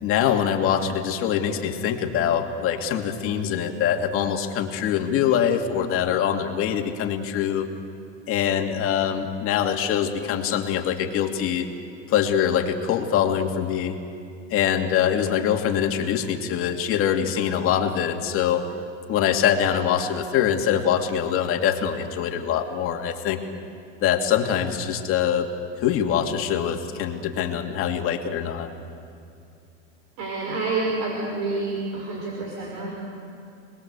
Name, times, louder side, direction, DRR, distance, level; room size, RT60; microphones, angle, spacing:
voice 1, 0.0-7.7 8.3-11.7 12.1-14.0 14.5-18.6 19.1-23.4 24.0-25.5 25.8-28.7, left 9 dB, 35° left, 3 dB, 2.5 m, -24 dB
voice 2, 30.2-32.9, right 3 dB, 55° right, -2 dB, 5.8 m, -28 dB
28.5 x 21.0 x 8.2 m, 2.4 s
supercardioid pair, 140°, 38 cm